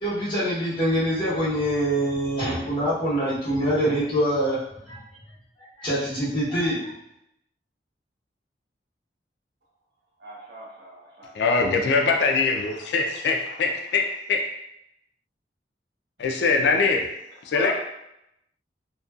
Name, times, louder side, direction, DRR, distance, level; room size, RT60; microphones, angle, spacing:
voice 1, 0.0-4.6 4.9-5.0 5.8-6.9, equal, 25° left, -10 dB, 1.1 m, -24 dB
voice 2, 10.2-11.3 17.5-17.7, right 1 dB, 65° right, -5 dB, 0.7 m, -40 dB
voice 3, 11.3-14.0 14.3-14.4 16.2-17.0 17.5-17.7, left 4 dB, 75° left, 2 dB, 0.3 m, -22 dB
2.5 x 2.1 x 2.3 m, 0.81 s
head